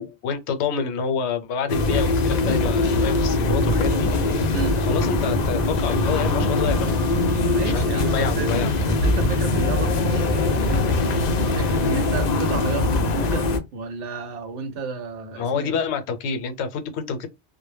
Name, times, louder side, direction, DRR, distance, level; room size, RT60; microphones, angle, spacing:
voice 1, 0.0-4.1 4.9-9.0 15.4-17.3, left 6 dB, 75° left, 0.8 m, -28 dB
sound 1, 1.7-13.6, left 2 dB, 60° left, 0.4 m, -22 dB
sound 2, 3.2-11.2, equal, 60° right, 0.8 m, -31 dB
voice 2, 7.5-8.5 8.9-15.7, right 3 dB, 85° right, 1.0 m, -31 dB
2.1 x 2.1 x 3.1 m
omnidirectional pair, 1.2 m